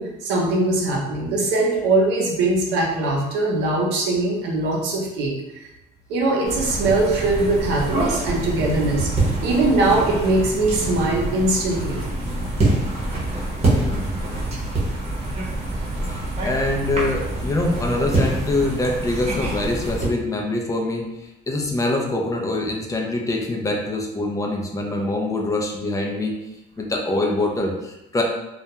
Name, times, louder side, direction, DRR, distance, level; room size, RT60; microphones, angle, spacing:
voice 1, 0.0-5.7 6.1-9.1 9.4-12.1, right 2 dB, 90° right, -1 dB, 0.7 m, -21 dB
sound 1, 6.4-20.1, right 2 dB, 40° right, 0.8 m, -25 dB
voice 2, 13.7-14.1 16.5-21.1 21.5-26.3 26.8-28.2, left 2 dB, 20° left, 0 dB, 0.4 m, -24 dB
2.3 x 2.1 x 2.8 m, 0.91 s
cardioid pair, 110°, 17 cm